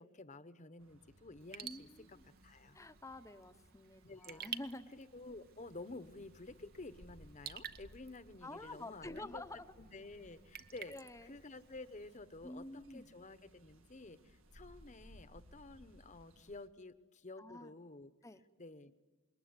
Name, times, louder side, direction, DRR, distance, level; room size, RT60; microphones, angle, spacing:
voice 1, 0.0-2.2 2.4-2.8 4.0-4.4 4.9-9.4 9.8-10.9 11.2-12.6 12.9-18.1 18.6-18.9, left 2 dB, 35° left, 12 dB, 1.1 m, -51 dB
sound 1, 0.8-16.7, equal, 75° right, 2.0 m, -63 dB
Raindrop / Drip, 1.4-12.2, right 8 dB, 50° right, 0.9 m, -53 dB
voice 2, 1.6-2.2 2.7-4.9 8.4-9.7 10.9-11.3 12.4-13.1 17.4-17.7 18.2-18.4, left 2 dB, 15° left, 10 dB, 0.9 m, -49 dB
26.5 x 22.0 x 9.7 m, 1.3 s
head